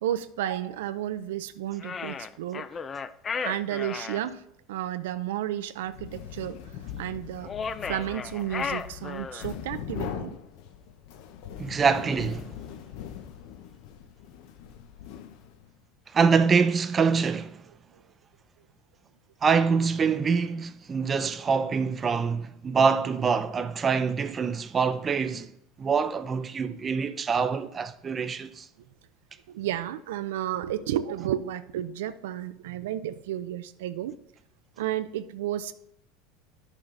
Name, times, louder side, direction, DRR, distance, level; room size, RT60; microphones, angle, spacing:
voice 1, 0.0-2.7 3.4-4.4 4.7-6.6 7.0-7.5 7.8-10.4 17.9-18.0 29.5-34.1 34.8-35.7, right 12 dB, 85° right, 0.5 m, -32 dB
sound 1, 1.8-4.2 7.4-9.6, left 6 dB, 25° left, 0.4 m, -34 dB
sound 2, 5.8-15.8, left 9 dB, 65° left, 0.9 m, -41 dB
voice 2, 11.6-12.5 16.1-17.6 19.4-25.5 25.8-28.7, right 5 dB, 25° right, 0.6 m, -25 dB
11.0 x 6.3 x 3.9 m
supercardioid pair, 125°, 0 cm